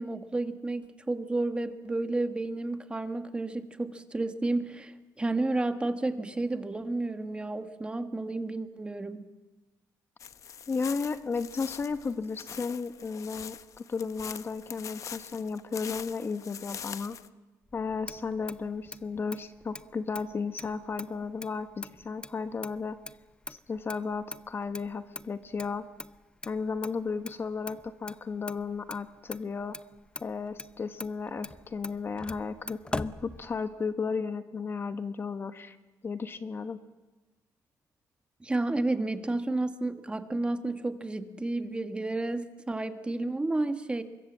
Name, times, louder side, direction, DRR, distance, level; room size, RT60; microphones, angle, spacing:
voice 1, 0.0-9.3 38.4-44.0, right 2 dB, 15° right, 8 dB, 1.4 m, -31 dB
sound 1, 10.2-17.3, left 8 dB, 50° left, 0.9 m, -43 dB
voice 2, 10.7-17.2 17.7-23.0 23.5-25.9 26.5-29.8 30.2-35.8 36.0-36.8, left 5 dB, 35° left, 10 dB, 1.2 m, -34 dB
Motor vehicle (road), 17.7-33.9, left 2 dB, 15° left, 0.7 m, -44 dB
25.0 x 22.0 x 7.4 m, 1.2 s
cardioid pair, 105°, 7 cm